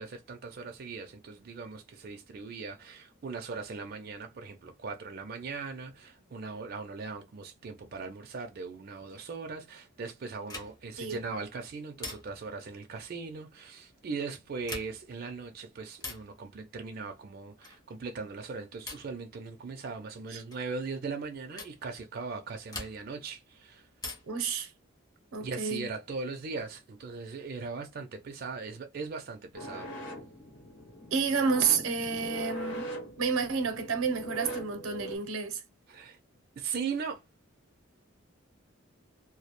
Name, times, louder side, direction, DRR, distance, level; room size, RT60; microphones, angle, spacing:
voice 1, 0.0-23.9 25.4-29.9 35.9-36.2 36.6-37.2, right 4 dB, 45° right, 0.4 m, -39 dB
sound 1, 10.5-11.0 12.0-12.6 14.5-15.2 16.0-16.4 17.6-18.0 18.9-19.2 20.5-20.7 21.6-21.8 22.7-23.3 24.0-24.5 25.9-26.6, left 2 dB, 15° left, 0.6 m, -43 dB
voice 2, 24.3-24.7 25.3-25.9 31.1-32.9 33.2-35.6, right 5 dB, 90° right, 0.6 m, -30 dB
sound 2, 29.5-35.2, right 1 dB, 60° left, 0.9 m, -41 dB
2.2 x 2.0 x 2.8 m
head